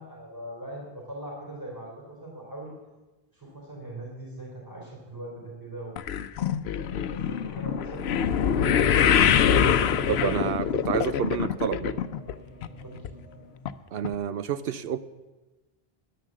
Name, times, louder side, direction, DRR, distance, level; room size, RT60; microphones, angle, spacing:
voice 1, 0.0-2.7 3.3-6.0 6.9-8.6 12.8-13.1, right 1 dB, 20° right, -3 dB, 3.7 m, -41 dB
sound 1, 6.0-12.3 12.6-13.1 13.7-13.8 14.0-14.1, left 8 dB, 90° left, 0.8 m, -24 dB
sound 2, 8.4-13.6, equal, 50° right, 5.7 m, -40 dB
voice 2, 10.1-12.0 13.9-15.0, right 8 dB, 70° right, 13 dB, 0.8 m, -29 dB
10.5 x 10.0 x 7.4 m, 1.1 s
omnidirectional pair, 1.0 m